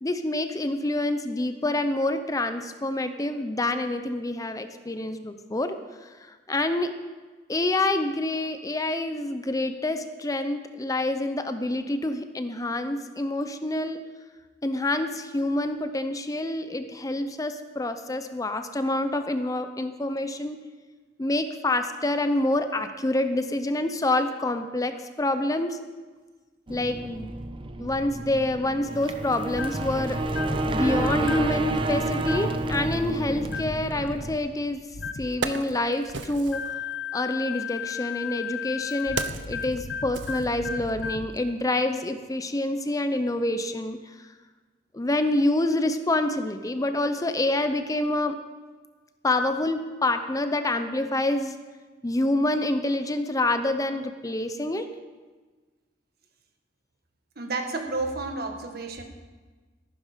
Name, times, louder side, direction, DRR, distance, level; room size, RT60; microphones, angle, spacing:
voice 1, 0.0-5.8 6.3-6.9 7.5-14.0 14.6-20.6 21.2-25.8 26.7-27.3 27.8-30.2 30.7-34.8 35.2-36.6 37.1-39.2 39.5-44.0 44.9-48.4 49.2-51.5 52.0-54.9, left 2 dB, 20° left, 9 dB, 0.6 m, -27 dB
sound 1, 26.7-34.4, right 1 dB, 30° right, 0.8 m, -29 dB
sound 2, 29.5-29.9 30.3-30.6 31.2-31.6 32.2-32.6 33.4-33.8 34.9-35.3 36.5-41.3, left 6 dB, 75° left, 0.8 m, -34 dB
Wood, 34.6-34.7 35.1-36.7 37.7-41.0 41.4-41.5, right 5 dB, 80° right, 0.8 m, -36 dB
voice 2, 57.4-59.0, right 3 dB, 55° right, 4 dB, 1.5 m, -31 dB
14.0 x 12.0 x 5.0 m, 1.3 s
head